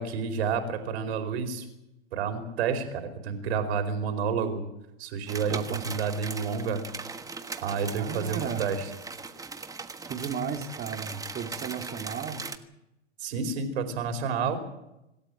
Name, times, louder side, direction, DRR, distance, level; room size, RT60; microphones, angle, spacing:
voice 1, 0.0-1.7 2.1-4.6 5.0-6.8 7.6-8.8 13.2-14.7, right 6 dB, 60° right, 7 dB, 4.6 m, -30 dB
sound 1, 5.3-12.6, right 4 dB, 10° right, 1.4 m, -39 dB
voice 2, 5.5-5.8 8.0-8.7 10.0-12.4, right 7 dB, 25° right, 4 dB, 3.1 m, -34 dB
25.5 x 13.5 x 9.0 m, 0.89 s
hypercardioid pair, 100°, 35 cm